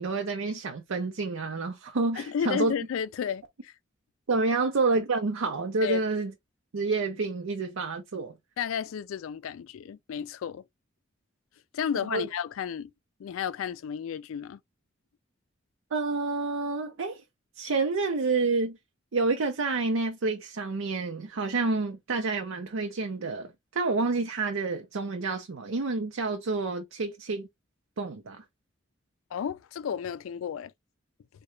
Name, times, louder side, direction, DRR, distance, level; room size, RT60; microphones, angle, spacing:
voice 1, 0.0-2.7 4.3-6.3 6.7-8.3 12.1-12.3 15.9-17.2 17.6-18.8 19.1-27.5 28.0-28.4, right 3 dB, 85° right, 0.6 m, -29 dB
voice 2, 2.2-3.7 5.8-6.0 8.6-10.6 11.7-12.9 13.2-14.6 29.3-30.7, left 7 dB, 85° left, 0.3 m, -32 dB
3.7 x 2.2 x 3.1 m
head